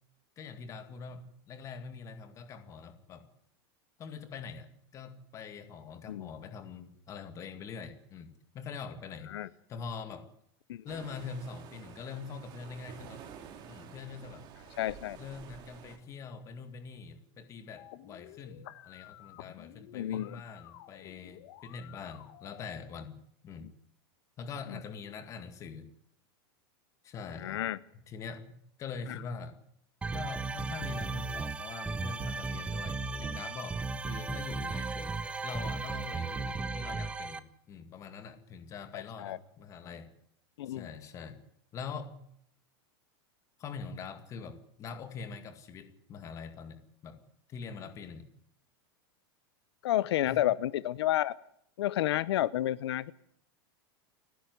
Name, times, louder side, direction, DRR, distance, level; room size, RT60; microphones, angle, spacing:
voice 1, 0.4-3.3 4.0-9.3 9.7-10.3 10.8-13.3 13.7-14.5 15.2-23.7 24.4-25.9 27.0-27.6 28.1-29.6 30.1-40.1 40.7-41.4 41.7-42.3 43.6-47.2 47.5-48.3 50.3-50.4, left 5 dB, 25° left, 9 dB, 2.0 m, -44 dB
sound 1, 10.9-16.0, right 7 dB, 35° right, 2.6 m, -50 dB
voice 2, 14.8-15.2 19.9-20.4 27.4-27.8 38.9-39.4 40.6-40.9 49.8-51.3 51.8-53.1, left 13 dB, 85° left, 18 dB, 0.7 m, -30 dB
sound 2, 17.8-22.8, left 14 dB, 50° left, 1.4 m, -52 dB
sound 3, 30.0-37.4, right 3 dB, 10° right, 0.8 m, -35 dB
29.5 x 10.5 x 9.6 m, 0.70 s
supercardioid pair, 165°, 13 cm